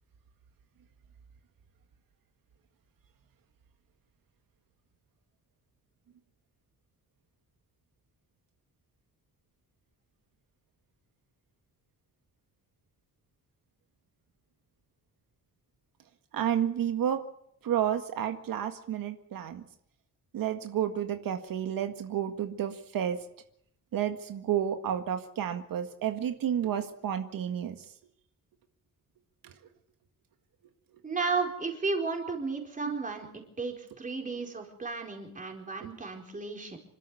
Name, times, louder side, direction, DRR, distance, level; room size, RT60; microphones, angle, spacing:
voice 1, 16.3-17.2 17.6-19.6 20.3-23.2 23.9-27.8 29.4-29.5, right 9 dB, 90° right, 7 dB, 1.9 m, -31 dB
voice 2, 31.0-36.8, right 4 dB, 25° right, 3 dB, 4.3 m, -33 dB
27.0 x 13.0 x 8.5 m, 0.72 s
wide cardioid pair, 175°, 33 cm